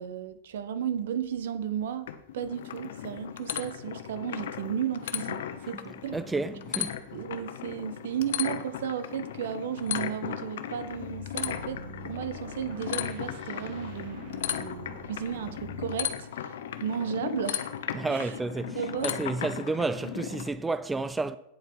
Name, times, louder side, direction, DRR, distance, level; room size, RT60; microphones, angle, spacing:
voice 1, 0.0-2.1 2.3-6.2 7.1-16.5 16.8-17.7 18.1-18.3 18.7-19.1, right 8 dB, 80° right, 1.1 m, -34 dB
sound 1, 2.1-20.5, left 10 dB, 75° left, 0.9 m, -36 dB
voice 2, 6.1-7.0 17.9-21.4, right 3 dB, 5° right, 0.3 m, -31 dB
sound 2, 10.8-16.1, left 2 dB, 60° right, 3.0 m, -44 dB
9.3 x 7.9 x 5.6 m
supercardioid pair, 165°, 0 cm